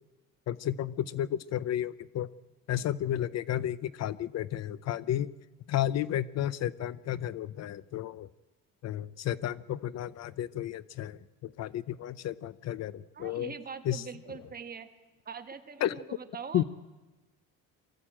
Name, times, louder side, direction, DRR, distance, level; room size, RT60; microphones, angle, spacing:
voice 1, 0.5-2.3 2.7-5.3 5.7-8.3 8.8-13.5 13.8-14.0 15.8-16.0 16.5-16.6, left 11 dB, 55° left, 18 dB, 0.6 m, -32 dB
voice 2, 13.1-14.9 15.2-16.6, right 6 dB, 30° right, 8 dB, 1.6 m, -43 dB
23.0 x 14.5 x 8.7 m, 1.1 s
cardioid pair, 135°, 32 cm